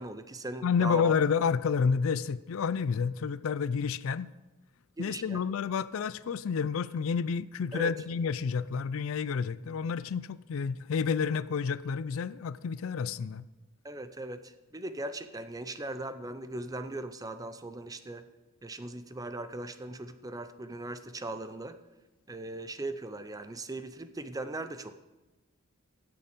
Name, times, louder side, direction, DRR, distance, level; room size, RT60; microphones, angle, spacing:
voice 1, 0.0-1.1 5.0-5.4 7.7-7.9 13.8-18.3 18.6-21.8 22.3-25.0, right 2 dB, 15° right, 0.5 m, -39 dB
voice 2, 0.6-4.3 5.0-13.4, left 6 dB, 65° left, 0.4 m, -30 dB
16.0 x 6.9 x 5.2 m
head